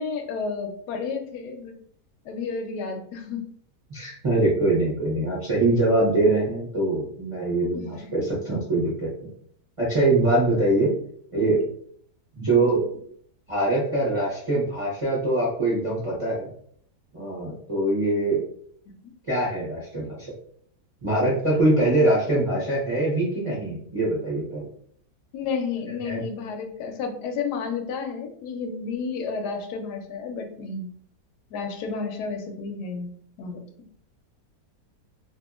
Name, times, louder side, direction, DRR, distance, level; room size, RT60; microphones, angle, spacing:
voice 1, 0.0-1.8 2.2-3.5 7.7-8.1 11.4-11.5 12.5-12.6 25.3-30.9 31.5-33.1 33.4-33.6, left 5 dB, 75° left, 5 dB, 1.1 m, -31 dB
voice 2, 3.9-9.1 9.8-10.9 11.3-11.6 12.3-12.8 13.5-16.5 17.1-18.4 19.3-20.3 21.0-24.7 26.0-26.2, right 2 dB, 30° right, -8 dB, 0.7 m, -23 dB
2.7 x 2.7 x 2.4 m, 0.62 s
omnidirectional pair, 1.8 m